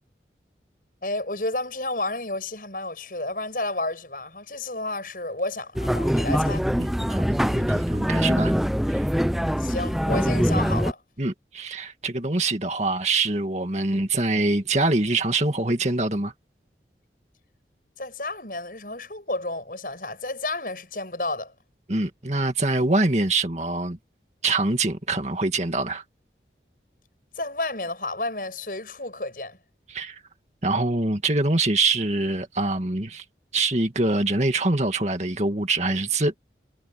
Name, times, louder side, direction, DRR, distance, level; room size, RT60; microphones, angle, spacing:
voice 1, 1.0-6.7 9.6-11.0 18.0-21.5 27.3-29.6, left 2 dB, 50° left, 7.4 m, -31 dB
sound 1, 5.8-10.9, equal, ahead, 0.6 m, -23 dB
voice 2, 6.8-8.5 8.9-9.0 11.2-16.3 21.9-24.0 24.4-26.0 29.9-30.2 30.6-33.2 33.5-36.3, right 2 dB, 40° right, 2.2 m, -24 dB
head